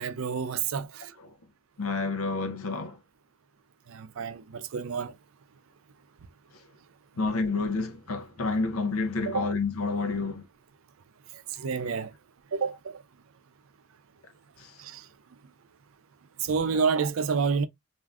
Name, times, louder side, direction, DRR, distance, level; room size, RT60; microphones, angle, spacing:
voice 1, 0.0-1.1 3.9-5.1 9.3-9.4 11.6-12.1 12.5-13.0 14.8-15.0 16.4-17.7, right 5 dB, 75° right, 0.4 m, -29 dB
voice 2, 1.8-3.0 7.2-10.4 14.6-14.7 16.7-16.9, left 3 dB, 80° left, 0.6 m, -29 dB
3.4 x 2.5 x 2.3 m
head